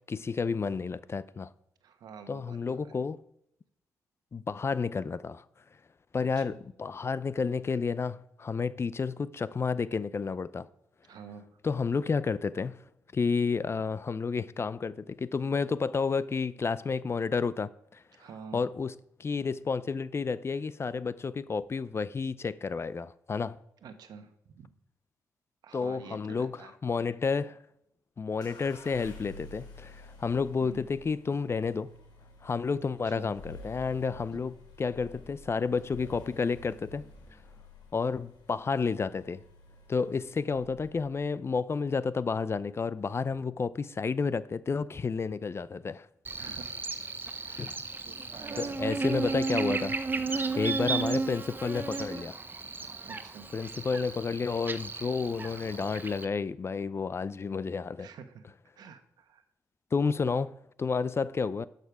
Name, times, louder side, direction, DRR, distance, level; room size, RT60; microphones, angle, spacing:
voice 1, 0.1-1.5 2.3-3.2 4.3-5.4 6.1-10.7 11.6-12.8 13.1-18.0 18.5-18.9 19.2-23.6 25.7-27.6 28.2-31.9 32.4-37.0 37.9-39.4 39.9-46.1 47.6-47.7 48.6-49.9 50.6-52.4 53.5-58.1 59.9-61.7, left 5 dB, 35° left, 0.5 m, -31 dB
voice 2, 1.8-2.9 6.2-6.6 11.1-11.6 18.2-18.6 23.8-24.7 25.6-26.7 30.6-30.9 33.0-33.3 34.3-34.4 46.3-46.8 47.4-47.8 48.0-48.7 53.0-53.5 58.0-58.4 58.8-59.4, right 6 dB, 70° right, 1.2 m, -48 dB
sound 1, 28.4-41.2, left 2 dB, 75° left, 4.1 m, -50 dB
Buzz, 46.2-56.2, right 3 dB, 30° right, 0.8 m, -34 dB
12.0 x 6.7 x 4.9 m
supercardioid pair, 60°, 7 cm